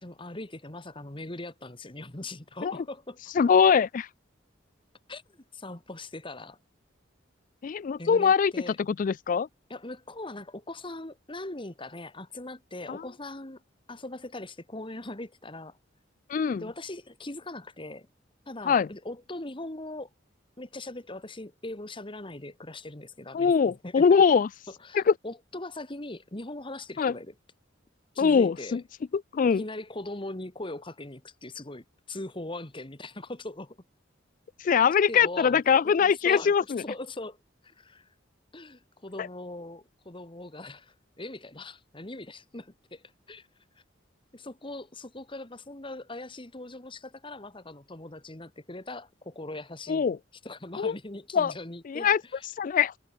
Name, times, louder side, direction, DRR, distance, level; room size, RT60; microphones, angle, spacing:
voice 1, 0.0-3.2 5.1-5.2 5.5-6.6 8.0-8.8 9.7-13.6 13.9-15.8 16.6-18.1 18.5-20.1 20.6-23.5 23.8-24.0 24.8-27.3 28.1-28.8 29.6-33.8 35.1-37.4 37.6-38.1 38.5-43.5 44.3-50.1 50.4-52.5, left 2 dB, 25° left, 2.0 m, -40 dB
voice 2, 3.4-4.1 7.6-8.5 8.8-9.5 12.9-13.0 16.3-16.6 18.7-18.9 23.3-24.5 24.9-25.1 27.0-27.1 28.2-28.8 29.1-29.6 34.6-36.8 39.2-39.3 49.9-50.2 50.8-51.0 51.3-51.5 51.9-52.2 52.6-52.9, left 6 dB, 45° left, 0.3 m, -22 dB
head